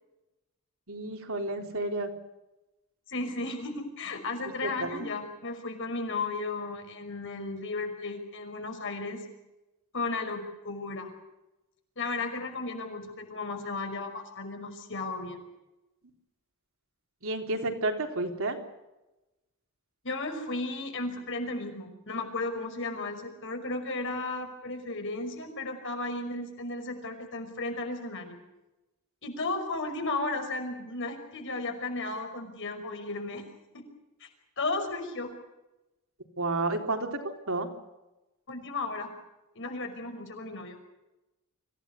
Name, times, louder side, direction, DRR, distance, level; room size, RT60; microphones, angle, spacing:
voice 1, 0.9-2.1 4.6-5.0 17.2-18.6 36.4-37.2 37.5-37.7, right 2 dB, 65° right, 3 dB, 3.8 m, -31 dB
voice 2, 3.1-9.2 9.9-11.1 12.0-15.5 20.0-28.3 29.2-33.4 33.7-33.8 34.2-34.3 34.6-35.3 38.5-39.1 39.6-40.8, left 3 dB, 60° left, 5 dB, 5.6 m, -34 dB
25.5 x 16.5 x 8.4 m, 0.99 s
head